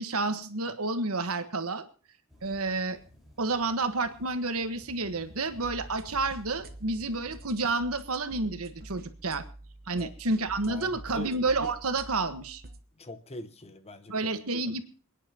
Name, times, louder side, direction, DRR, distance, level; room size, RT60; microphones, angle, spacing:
voice 1, 0.0-1.8 2.4-3.0 3.4-9.4 9.9-12.6 14.1-14.8, right 3 dB, 80° right, 9 dB, 1.4 m, -30 dB
sound 1, 2.3-7.7, left 1 dB, ahead, 4.7 m, -55 dB
sound 2, 5.6-12.8, right 2 dB, 45° right, 1.1 m, -47 dB
voice 2, 10.7-11.3 13.0-14.1, left 2 dB, 30° left, 10 dB, 1.1 m, -42 dB
28.0 x 9.9 x 2.9 m, 0.39 s
head